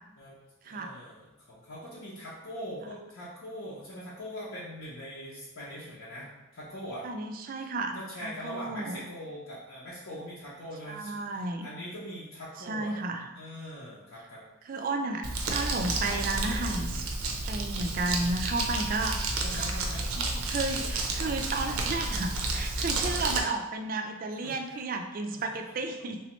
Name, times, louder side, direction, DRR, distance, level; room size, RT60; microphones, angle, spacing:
voice 1, 0.6-7.1 7.6-7.7 7.9-12.9 13.3-14.4 14.7-14.9 19.4-20.1 22.9-23.2 24.4-24.6 25.3-25.4 25.7-25.8, equal, 70° left, -8 dB, 0.7 m, -42 dB
voice 2, 7.0-9.0 10.9-11.7 12.7-13.3 14.7-17.1 17.5-19.2 19.5-19.7 20.2-26.2, right 3 dB, 40° right, 5 dB, 0.3 m, -33 dB
Crumpling crinkling, 15.2-23.4, right 2 dB, 90° right, 0.6 m, -31 dB
3.3 x 3.1 x 3.0 m, 1.0 s
head